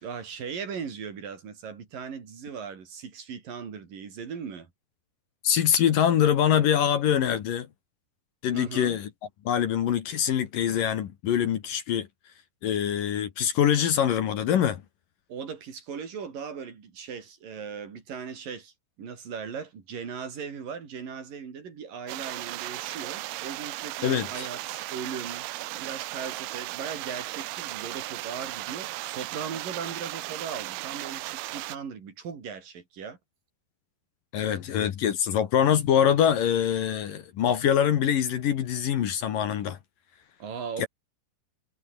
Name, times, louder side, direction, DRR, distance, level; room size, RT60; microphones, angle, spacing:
voice 1, 0.0-4.7 8.5-9.0 15.3-25.5 25.7-33.2 40.4-40.9, right 6 dB, 50° right, 5.4 m, -38 dB
voice 2, 5.4-7.7 8.4-9.1 9.4-12.1 12.6-14.8 24.0-24.5 34.3-39.8 40.8-40.9, left 9 dB, 60° left, 2.9 m, -24 dB
sound 1, 22.1-31.8, right 19 dB, 75° right, 2.5 m, -36 dB
omnidirectional pair, 5.1 m